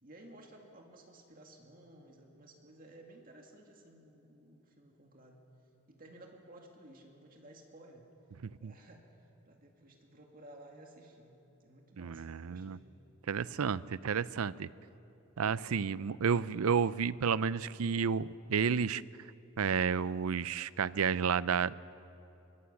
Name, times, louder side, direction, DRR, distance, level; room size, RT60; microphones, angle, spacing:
voice 1, 0.0-5.4 5.9-11.3 11.6-12.9, right 1 dB, 40° right, 1 dB, 2.3 m, -56 dB
voice 2, 12.0-12.8 13.3-14.7 15.4-19.0 19.6-21.7, right 6 dB, 90° right, 18 dB, 0.5 m, -31 dB
24.0 x 23.5 x 7.2 m, 2.9 s
head